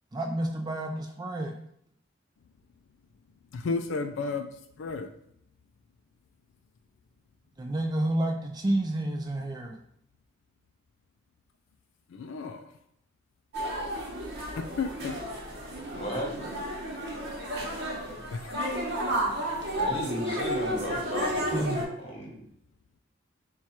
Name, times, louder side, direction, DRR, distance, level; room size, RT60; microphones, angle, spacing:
voice 1, 0.1-1.5 7.6-9.8 21.5-21.8, right 1 dB, 20° right, 3 dB, 0.3 m, -30 dB
voice 2, 3.5-4.5 4.8-5.1 12.1-12.7 14.5-15.2 18.3-18.6, left 4 dB, 70° left, 6 dB, 0.3 m, -32 dB
sound 1, 13.5-21.8, equal, 50° right, 1.0 m, -32 dB
voice 3, 15.9-16.5 19.7-21.7 22.0-22.4, equal, 30° left, -2 dB, 1.1 m, -35 dB
4.5 x 2.4 x 4.2 m, 0.71 s
head